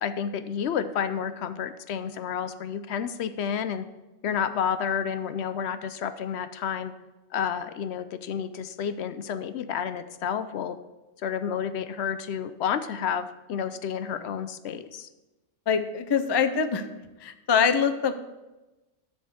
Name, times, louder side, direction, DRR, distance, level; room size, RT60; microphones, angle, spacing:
voice 1, 0.0-3.8 4.2-6.9 7.3-10.8 11.2-15.1, left 8 dB, 65° left, 11 dB, 0.8 m, -30 dB
voice 2, 15.7-16.9 17.2-18.1, left 6 dB, 40° left, 9 dB, 0.3 m, -24 dB
11.0 x 4.3 x 6.9 m, 1.1 s
omnidirectional pair, 1.3 m